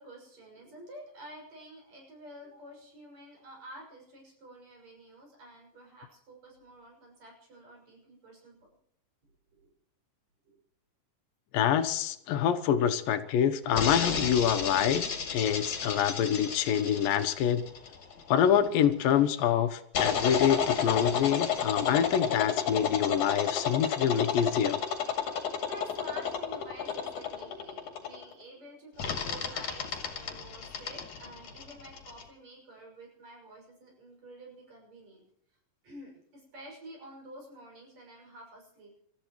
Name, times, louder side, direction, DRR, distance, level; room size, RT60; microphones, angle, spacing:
voice 1, 0.0-8.6 9.5-9.7 10.5-10.6 25.6-35.2 35.8-38.9, right 1 dB, 50° right, -1 dB, 7.5 m, -49 dB
voice 2, 11.5-17.7 18.3-24.8, left 9 dB, 85° left, 9 dB, 2.7 m, -26 dB
sound 1, 13.8-18.7 20.0-28.3 29.0-32.2, left 7 dB, 60° left, 3.5 m, -32 dB
29.5 x 14.5 x 3.1 m, 0.75 s
omnidirectional pair, 3.9 m